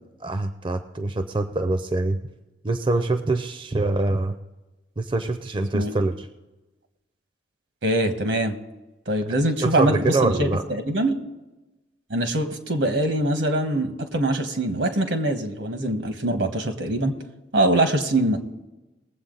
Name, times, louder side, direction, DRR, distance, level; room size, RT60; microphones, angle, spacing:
voice 1, 0.2-2.2 2.6-4.4 5.0-6.3 9.6-10.6, right 2 dB, 25° right, 9 dB, 0.5 m, -24 dB
voice 2, 7.8-8.6 9.1-11.2 12.1-17.1 17.5-18.4, right 1 dB, 80° right, 7 dB, 1.4 m, -23 dB
20.0 x 7.8 x 3.9 m, 1.1 s
head